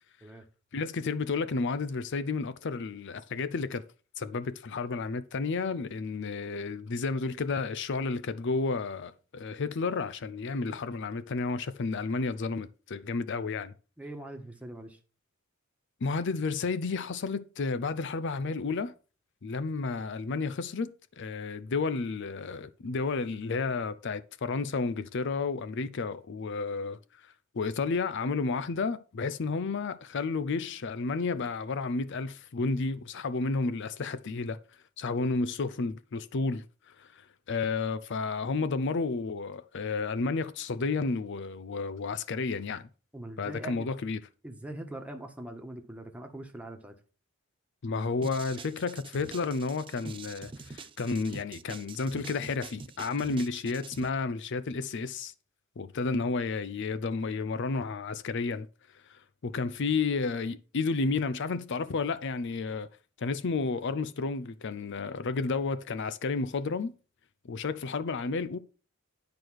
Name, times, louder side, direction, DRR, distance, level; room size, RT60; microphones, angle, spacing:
voice 1, 0.7-3.8 4.2-13.7 16.0-18.9 19.4-34.6 35.0-42.9 43.4-44.2 47.8-55.3 55.8-58.7 58.9-62.9 63.2-66.9 67.5-68.6, left 4 dB, 55° left, 0.5 m, -32 dB
voice 2, 14.0-15.0 43.1-43.9 44.4-46.9, right 1 dB, 5° right, 1.3 m, -42 dB
sound 1, 48.2-54.1, right 4 dB, 25° right, 0.5 m, -45 dB
10.5 x 4.7 x 6.3 m
head